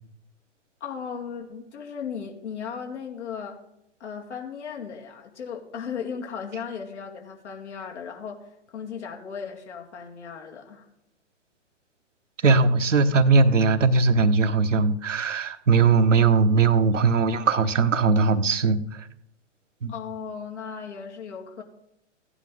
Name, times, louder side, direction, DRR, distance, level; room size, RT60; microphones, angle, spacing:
voice 1, 0.8-3.6 4.0-8.4 8.7-10.9 19.9-21.6, left 6 dB, 65° left, 1 dB, 2.4 m, -36 dB
voice 2, 12.4-19.1 19.8-19.9, right 4 dB, 80° right, 9 dB, 1.0 m, -20 dB
15.5 x 9.8 x 3.9 m, 0.81 s
figure-of-eight pair, 115°, 37 cm